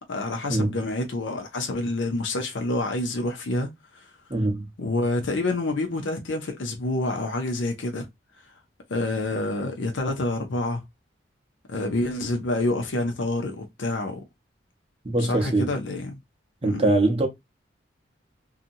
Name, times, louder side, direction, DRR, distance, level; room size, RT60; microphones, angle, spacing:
voice 1, 0.1-4.1 4.8-8.1 8.9-10.8 11.7-14.2 15.2-16.2 16.6-16.9, left 2 dB, 90° left, 0.6 m, -28 dB
voice 2, 4.3-4.7 15.0-15.7 16.6-17.3, right 2 dB, 30° right, 0.6 m, -23 dB
2.8 x 2.4 x 2.5 m
head